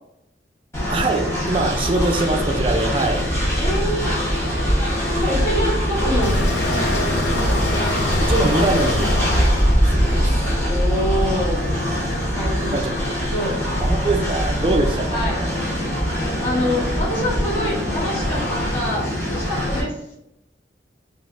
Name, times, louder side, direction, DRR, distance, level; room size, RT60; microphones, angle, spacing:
Train, 0.7-19.8, equal, 15° left, 0.9 m, -22 dB
voice 1, 0.9-3.3 8.2-9.2 9.9-10.2 12.6-13.2 13.8-15.6, right 2 dB, 30° right, 4 dB, 0.3 m, -23 dB
voice 2, 3.6-4.1 5.0-6.3 6.7-7.4 10.6-11.6 12.3-12.8 13.3-13.6 15.1-15.4 16.4-18.4 18.7-20.0, equal, 35° left, -12 dB, 1.1 m, -26 dB
sound 1, 6.2-11.2, left 1 dB, 85° left, 0.5 m, -26 dB
3.3 x 2.5 x 2.4 m, 0.84 s
head